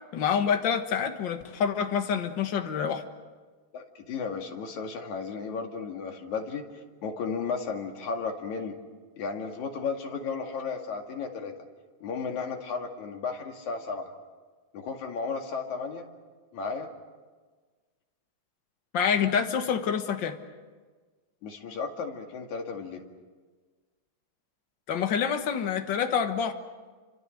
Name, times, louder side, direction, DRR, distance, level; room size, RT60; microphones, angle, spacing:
voice 1, 0.1-3.0 18.9-20.4 24.9-26.5, left 7 dB, 45° left, 6 dB, 1.8 m, -27 dB
voice 2, 3.7-6.6 7.0-8.8 9.2-11.5 12.0-14.1 14.7-16.1 16.5-16.9 21.4-23.0, left 5 dB, 80° left, 3 dB, 3.6 m, -34 dB
29.5 x 25.5 x 6.5 m, 1.4 s
omnidirectional pair, 3.3 m